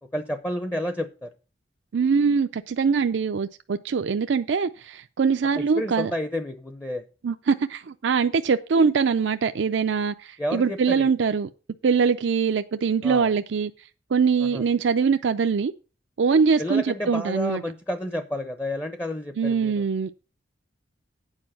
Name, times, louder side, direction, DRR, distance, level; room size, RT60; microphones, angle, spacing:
voice 1, 0.1-1.3 5.5-7.0 10.4-11.1 13.0-13.3 14.4-14.6 16.6-19.9, left 1 dB, 15° left, 0.7 m, -30 dB
voice 2, 1.9-6.1 7.2-11.5 11.8-13.7 14.1-15.7 16.2-17.6 19.4-20.1, right 5 dB, 75° right, 0.4 m, -23 dB
8.9 x 4.7 x 7.5 m
head